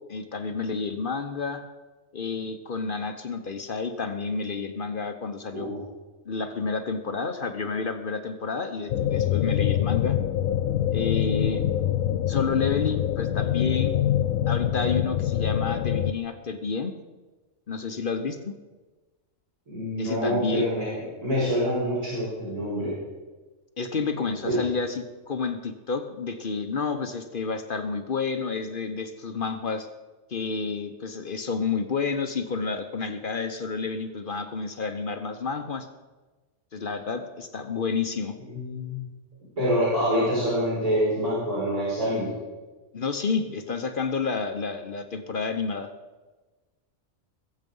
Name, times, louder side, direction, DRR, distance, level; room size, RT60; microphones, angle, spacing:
voice 1, 0.1-1.6 2.1-5.7 6.3-10.2 10.9-11.6 12.3-13.9 14.5-16.9 17.7-18.5 20.0-20.7 23.8-29.9 30.3-35.9 36.7-38.4 42.9-45.9, left 4 dB, 45° left, 7 dB, 0.9 m, -30 dB
sound 1, 8.9-16.1, left 11 dB, 80° left, 1.0 m, -25 dB
voice 2, 19.7-20.9 21.2-23.0 24.4-24.5 38.5-39.0 39.6-42.3, equal, 75° right, -11 dB, 6.3 m, -26 dB
21.5 x 7.5 x 5.4 m, 1.2 s
omnidirectional pair, 1.4 m